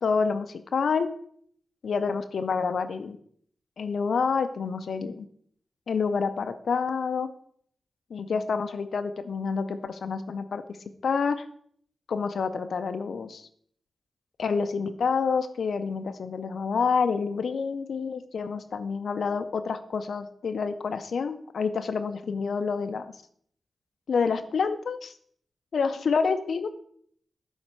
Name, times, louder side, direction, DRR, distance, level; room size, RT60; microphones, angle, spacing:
voice 1, 0.0-1.1 1.8-3.2 3.8-5.3 5.9-7.3 8.1-10.6 11.0-11.5 12.1-13.5 14.4-23.1 24.1-25.1 25.7-26.7, left 5 dB, 75° left, 10 dB, 0.4 m, -28 dB
7.3 x 3.2 x 4.5 m, 0.62 s
cardioid pair, 45°, 0 cm